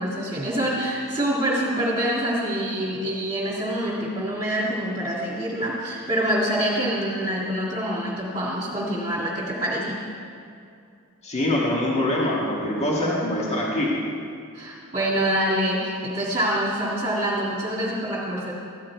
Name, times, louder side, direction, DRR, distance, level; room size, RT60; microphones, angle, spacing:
voice 1, 0.0-10.0 14.5-18.5, right 1 dB, 25° right, -8 dB, 2.1 m, -26 dB
voice 2, 11.2-13.9, left 1 dB, 30° left, -5 dB, 1.9 m, -24 dB
15.0 x 10.5 x 4.6 m, 2.4 s
head